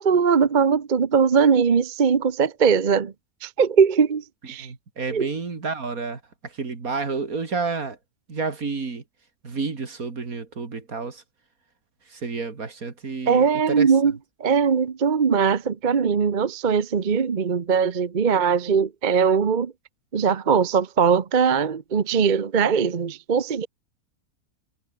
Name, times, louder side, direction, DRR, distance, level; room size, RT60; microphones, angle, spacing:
voice 1, 0.0-3.1 3.4-4.7 5.1-5.3 13.3-19.7 20.1-23.7, right 6 dB, 35° right, 0.9 m, -20 dB
voice 2, 4.5-8.0 8.3-9.0 9.4-11.2 12.1-13.9, right 4 dB, 70° right, 3.1 m, -30 dB
omnidirectional pair, 1.5 m